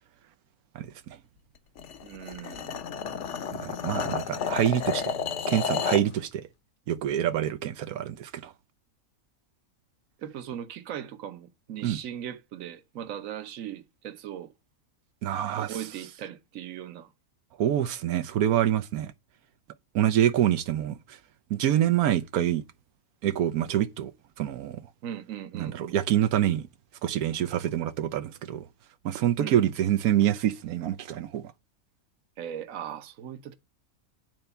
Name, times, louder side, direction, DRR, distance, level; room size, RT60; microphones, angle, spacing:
sound 1, 1.8-6.1, left 6 dB, 60° left, 1.0 m, -31 dB
voice 1, 2.0-2.8 10.2-14.5 15.6-17.1 25.0-25.9 29.4-29.7 32.4-33.5, right 10 dB, 70° right, 1.3 m, -38 dB
voice 2, 3.6-5.1 5.5-6.5 6.9-8.5 11.8-12.0 15.2-15.8 17.6-19.1 19.9-21.2 21.5-22.6 23.2-24.1 24.4-24.8 25.5-26.6 27.0-28.6 29.0-31.4, right 11 dB, 90° right, 1.2 m, -26 dB
9.3 x 4.4 x 6.8 m
omnidirectional pair, 1.5 m